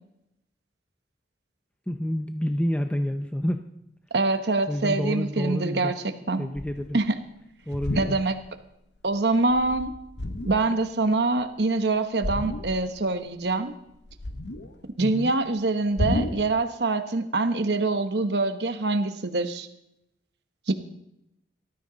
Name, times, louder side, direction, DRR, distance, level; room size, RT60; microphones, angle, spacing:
voice 1, 1.9-3.6 4.7-5.9 6.4-7.0 7.7-8.2 15.0-15.3, equal, 5° left, 6 dB, 0.6 m, -28 dB
voice 2, 4.1-6.5 6.9-7.2 7.9-8.4 9.0-9.9 10.4-13.8 15.0-19.7 20.7-20.8, right 3 dB, 75° right, 8 dB, 1.1 m, -25 dB
sound 1, 6.6-7.0 7.6-8.6 9.0-9.2 9.5-10.8 12.2-13.0 13.3-14.9 16.0-16.6, left 1 dB, 85° left, 1.0 m, -31 dB
18.5 x 13.5 x 3.9 m, 0.82 s
head